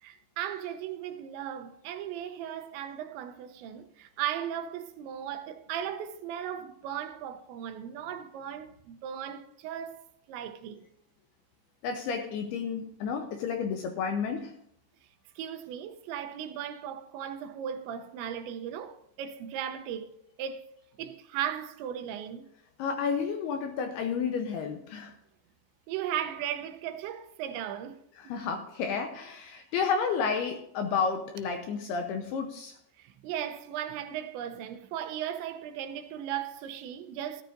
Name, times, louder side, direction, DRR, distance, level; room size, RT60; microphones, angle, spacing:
voice 1, 0.0-10.9 15.4-20.1 20.4-20.7 21.0-22.5 25.9-28.0 33.0-37.4, right 10 dB, 80° right, 2.9 m, -37 dB
voice 2, 11.8-14.5 22.8-25.2 28.2-32.8, left 6 dB, 80° left, 2.4 m, -31 dB
16.5 x 13.0 x 2.6 m
omnidirectional pair, 5.4 m